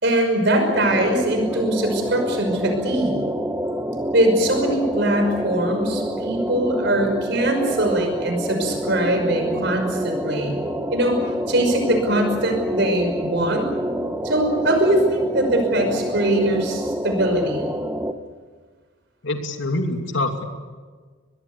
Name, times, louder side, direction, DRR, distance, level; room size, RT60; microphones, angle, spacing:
voice 1, 0.0-3.2 4.1-10.5 10.9-11.2 11.5-13.7 14.2-17.7, right 1 dB, 55° right, 5 dB, 5.7 m, -21 dB
sound 1, 0.7-18.1, equal, 10° right, 1.2 m, -27 dB
voice 2, 19.2-20.4, left 2 dB, 70° left, 5 dB, 2.7 m, -25 dB
24.0 x 21.0 x 8.4 m, 1.5 s
head